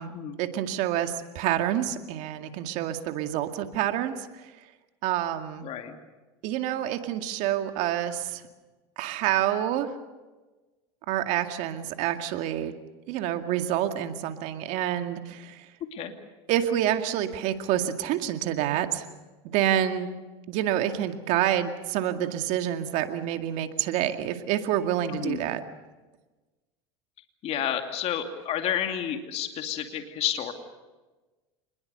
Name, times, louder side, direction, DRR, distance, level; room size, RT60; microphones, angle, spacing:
voice 1, 0.4-4.3 5.0-5.7 6.4-8.4 9.0-9.9 11.1-12.7 13.1-15.7 16.5-19.1 19.5-20.1 20.5-25.6, right 11 dB, 60° right, 6 dB, 2.2 m, -27 dB
voice 2, 5.6-5.9 15.9-16.1 25.1-25.4 27.4-30.5, left 9 dB, 50° left, 5 dB, 2.6 m, -30 dB
27.0 x 21.0 x 6.8 m, 1.2 s
supercardioid pair, 100°, 14 cm